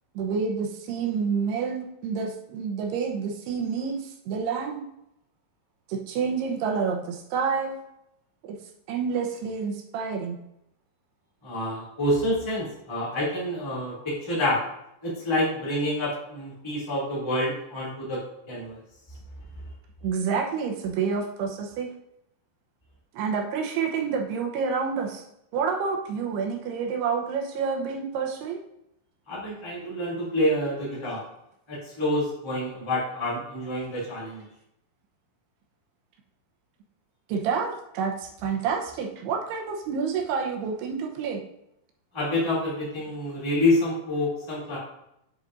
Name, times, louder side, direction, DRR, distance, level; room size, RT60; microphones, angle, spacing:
voice 1, 0.2-4.8 5.9-7.8 8.4-8.6 8.9-10.4 20.0-21.9 23.1-25.2 25.5-28.6 37.3-41.4, right 6 dB, 80° right, 2 dB, 3.0 m, -28 dB
voice 2, 11.4-14.6 15.0-18.2 18.5-18.8 29.3-31.2 31.7-34.5 42.1-44.8, left 1 dB, 10° left, -7 dB, 2.1 m, -27 dB
8.1 x 7.4 x 2.7 m, 0.80 s
omnidirectional pair, 4.6 m